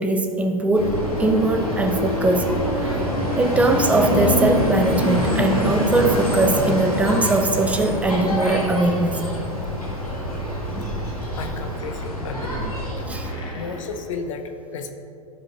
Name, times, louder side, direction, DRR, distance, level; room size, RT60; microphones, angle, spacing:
voice 1, 0.0-3.0 3.4-9.2 13.1-13.3, right 2 dB, 5° right, 5 dB, 0.5 m, -21 dB
sound 1, 0.7-13.3, equal, 85° left, 1.6 m, -25 dB
sound 2, 5.3-14.0, equal, 25° left, 1.4 m, -39 dB
voice 2, 11.4-12.7 13.0-13.1 13.5-14.9, left 4 dB, 60° left, 6 dB, 0.7 m, -33 dB
12.0 x 5.1 x 2.9 m, 2.7 s
figure-of-eight pair, 90°, 18 cm